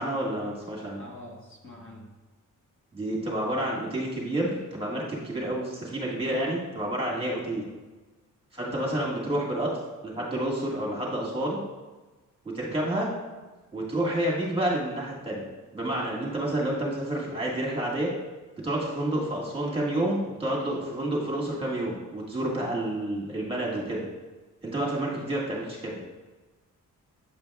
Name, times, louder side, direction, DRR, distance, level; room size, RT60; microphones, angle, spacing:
voice 1, 0.0-1.0 2.9-7.6 8.5-9.7 10.0-11.6 12.5-13.1 13.7-15.4 15.7-18.1 18.6-24.1 24.6-26.1, right 1 dB, 15° right, -4 dB, 1.7 m, -29 dB
voice 2, 0.9-2.1 7.4-7.6 8.7-9.0 25.1-25.4, left 1 dB, 40° left, -3 dB, 1.3 m, -46 dB
8.1 x 5.1 x 2.3 m, 1.2 s
cardioid pair, 85°, 32 cm